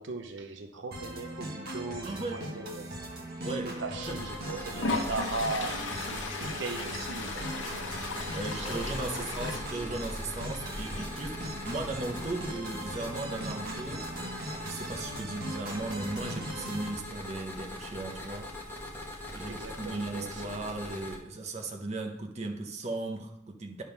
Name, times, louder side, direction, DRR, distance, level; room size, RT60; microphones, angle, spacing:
voice 1, 0.0-2.9 3.6-5.8 6.1-8.1 8.5-9.6 19.5-20.6, right 3 dB, 65° right, 6 dB, 0.7 m, -39 dB
sound 1, 0.9-16.9, right 1 dB, 50° right, 1.4 m, -40 dB
voice 2, 2.0-2.4 3.4-3.8 4.1-4.2 8.3-14.1 14.6-18.5 19.3-23.8, right 2 dB, 35° right, 3 dB, 0.8 m, -37 dB
Toilet flush, 3.8-3.9 4.7-9.6, left 3 dB, 70° left, 1.0 m, -36 dB
sound 2, 4.1-21.2, left 1 dB, 10° left, 1.0 m, -41 dB
9.8 x 3.6 x 5.8 m, 0.78 s
head